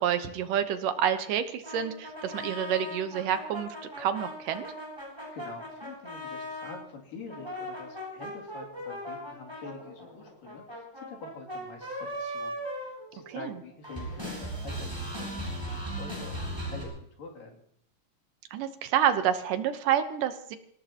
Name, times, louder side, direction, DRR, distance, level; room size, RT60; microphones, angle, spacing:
voice 1, 0.0-4.7 13.3-13.4 18.5-20.6, right 9 dB, 80° right, 9 dB, 2.7 m, -28 dB
sound 1, 1.6-6.8 7.3-13.6 13.8-16.8, equal, 5° right, 7.1 m, -38 dB
voice 2, 5.3-17.6, left 3 dB, 85° left, -1 dB, 4.5 m, -46 dB
26.0 x 18.0 x 3.0 m, 0.67 s
omnidirectional pair, 3.8 m